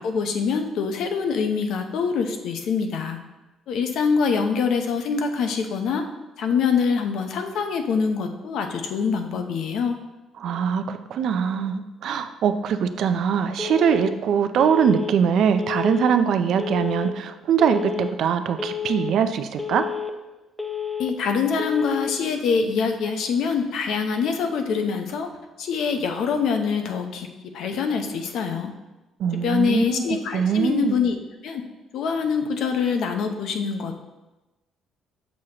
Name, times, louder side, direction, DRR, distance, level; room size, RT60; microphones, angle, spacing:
voice 1, 0.0-3.2 3.7-6.0 6.4-10.0 21.0-25.3 25.6-27.3 27.5-28.7 29.3-31.2 31.4-31.6 31.9-34.0, left 5 dB, 70° left, 5 dB, 0.7 m, -24 dB
voice 2, 10.4-19.9 29.2-30.1 30.3-31.0, right 7 dB, 65° right, 9 dB, 0.4 m, -22 dB
Telephone, 13.6-14.1 14.6-15.1 15.6-16.1 16.6-17.1 17.6-18.1 18.6-19.1 19.6-20.1 20.6-21.1 21.6-22.1, left 7 dB, 5° left, 0.5 m, -30 dB
6.3 x 6.2 x 2.9 m, 1.1 s
cardioid pair, 125°, 0 cm